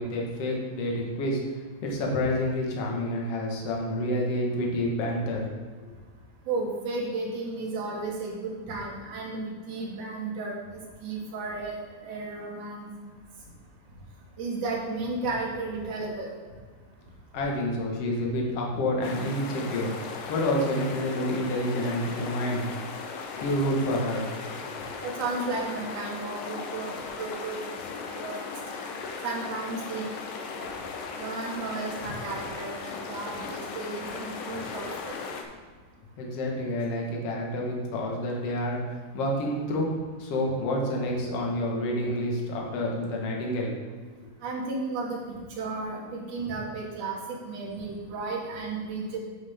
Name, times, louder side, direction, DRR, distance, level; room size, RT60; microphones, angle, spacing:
voice 1, 0.0-1.4 1.8-5.5 5.8-5.9 17.3-22.7 23.4-24.3 36.2-43.7, left 1 dB, 55° left, -1 dB, 1.9 m, -28 dB
voice 2, 6.5-11.8 12.0-12.9 14.4-16.3 25.0-27.7 28.1-28.4 28.7-28.8 29.2-30.1 31.2-35.1 44.4-45.2 45.6-49.2, right 3 dB, 50° right, -3 dB, 2.6 m, -33 dB
sound 1, 19.0-35.4, left 5 dB, 70° left, 2.3 m, -37 dB
9.1 x 8.8 x 3.6 m, 1.5 s
omnidirectional pair, 4.6 m